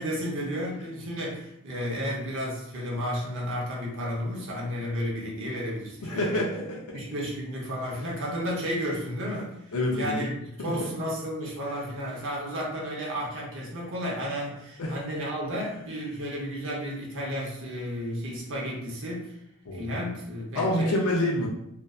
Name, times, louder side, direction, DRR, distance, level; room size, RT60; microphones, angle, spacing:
voice 1, 0.0-6.5 6.9-19.4 19.7-21.0, equal, 60° right, -3 dB, 0.6 m, -32 dB
voice 2, 6.0-7.0 9.7-10.3 10.6-10.9 14.8-15.0 19.7-20.0 20.6-21.5, left 1 dB, 80° left, -3 dB, 0.5 m, -27 dB
2.6 x 2.2 x 2.3 m, 0.79 s
head